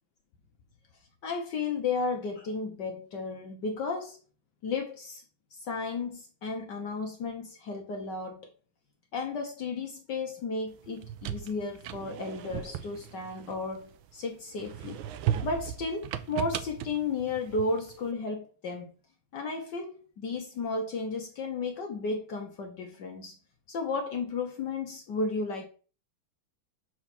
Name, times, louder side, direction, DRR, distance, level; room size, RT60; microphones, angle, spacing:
voice 1, 1.2-4.2 4.6-5.2 5.5-8.5 9.1-15.0 15.4-18.9 19.3-23.3 23.7-25.7, left 3 dB, 60° left, 1.5 m, -33 dB
sound 1, 10.8-14.1 14.6-18.0, right 10 dB, 75° right, 1.4 m, -36 dB
6.3 x 4.7 x 5.8 m
omnidirectional pair, 2.4 m